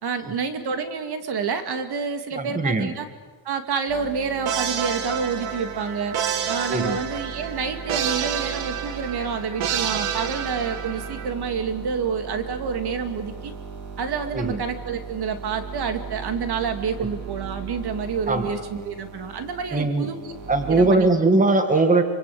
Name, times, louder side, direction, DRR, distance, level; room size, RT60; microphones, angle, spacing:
voice 1, 0.0-3.0 3.4-6.2 6.5-13.5 14.0-20.3 20.7-21.1, right 5 dB, 50° right, 8 dB, 2.5 m, -28 dB
voice 2, 2.3-2.9 6.7-7.0 14.3-14.6 17.0-17.1 18.3-18.5 19.7-20.1 20.5-22.0, right 2 dB, 15° right, 8 dB, 1.9 m, -20 dB
sound 1, 3.9-20.9, right 5 dB, 70° right, 4.5 m, -38 dB
sound 2, 4.5-11.3, right 8 dB, 90° right, 2.5 m, -29 dB
26.0 x 25.0 x 8.5 m, 1.3 s
cardioid pair, 150°, 48 cm